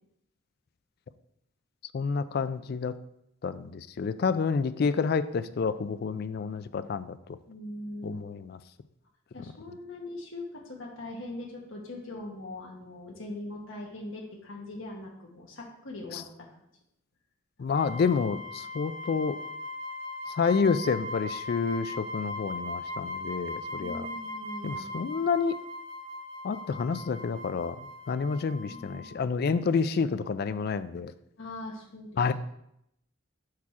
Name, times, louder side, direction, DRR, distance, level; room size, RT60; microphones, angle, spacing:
voice 1, 1.9-2.9 3.4-7.2 8.0-8.6 16.1-16.2 17.6-19.4 20.4-24.1 24.6-25.5 26.4-27.8 28.1-31.1 32.2-32.3, left 5 dB, 50° left, 14 dB, 0.3 m, -29 dB
voice 2, 7.4-8.2 9.3-16.6 23.8-24.9 28.6-29.1 31.4-32.3, left 2 dB, 70° left, -1 dB, 1.1 m, -41 dB
sound 1, 17.7-29.2, left 2 dB, 45° right, 1.1 m, -39 dB
5.7 x 4.7 x 4.8 m, 0.78 s
head